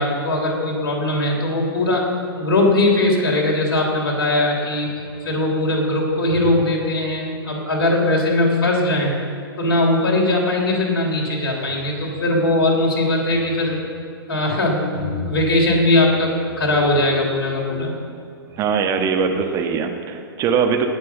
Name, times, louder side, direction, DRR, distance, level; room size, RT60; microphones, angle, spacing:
voice 1, 0.0-4.9 5.2-9.1 9.6-13.8 14.3-17.9, left 2 dB, 60° left, 0 dB, 3.2 m, -20 dB
sound 1, 4.6-5.5 6.3-8.9 10.6-10.9 11.2-14.2 14.9-19.7, left 1 dB, 75° right, 3.5 m, -38 dB
voice 2, 18.6-20.9, right 6 dB, 25° right, 4 dB, 1.3 m, -21 dB
18.5 x 6.2 x 7.4 m, 2.4 s
figure-of-eight pair, 110°, 13 cm